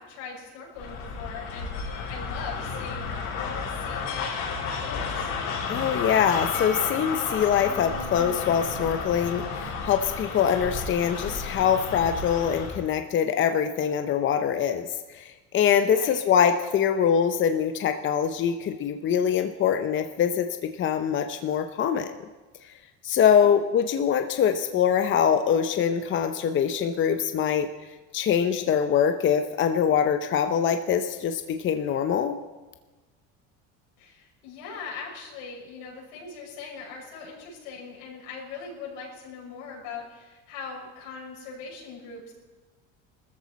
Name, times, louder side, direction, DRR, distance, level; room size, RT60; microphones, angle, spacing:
voice 1, 0.0-5.3 15.8-16.2 23.2-23.5 34.0-42.3, left 5 dB, 90° left, -3 dB, 6.0 m, -41 dB
sound 1, 0.8-12.8, left 5 dB, 75° left, 5.4 m, -32 dB
voice 2, 5.7-22.1 23.0-27.7 28.1-32.4, left 8 dB, 35° left, 7 dB, 0.8 m, -24 dB
19.5 x 14.0 x 4.3 m, 1.2 s
cardioid pair, 120°, 33 cm